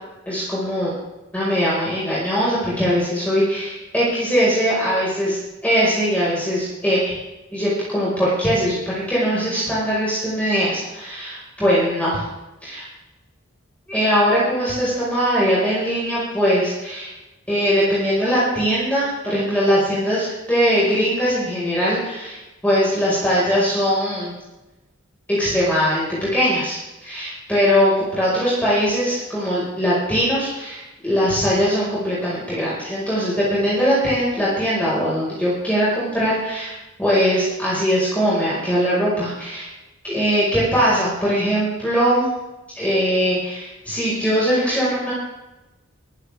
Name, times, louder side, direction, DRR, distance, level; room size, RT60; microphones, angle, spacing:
voice 1, 0.3-0.9 1.3-5.4 5.6-7.1 7.5-12.2 12.6-12.8 13.9-17.1 17.5-24.3 25.3-36.7 37.0-39.7 40.0-42.3 42.8-45.1, equal, 5° left, -9 dB, 5.4 m, -21 dB
24.0 x 11.5 x 3.6 m, 1.0 s
head